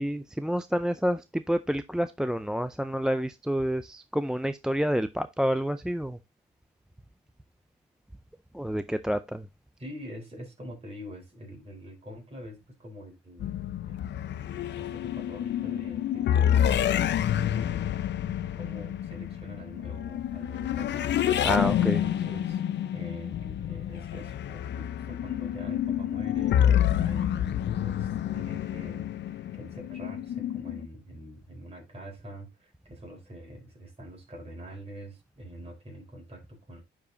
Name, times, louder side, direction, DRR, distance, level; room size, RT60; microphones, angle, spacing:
voice 1, 0.0-6.2 8.5-9.5 21.4-22.0, equal, 5° right, 0.4 m, -28 dB
voice 2, 9.8-13.5 13.9-14.2 14.7-16.9 17.4-18.0 18.5-21.1 21.7-22.6 22.9-36.8, equal, 30° right, 3.9 m, -45 dB
sound 1, 13.4-30.9, left 10 dB, 65° left, 0.6 m, -28 dB
10.0 x 4.9 x 2.6 m
cardioid pair, 90°, 20 cm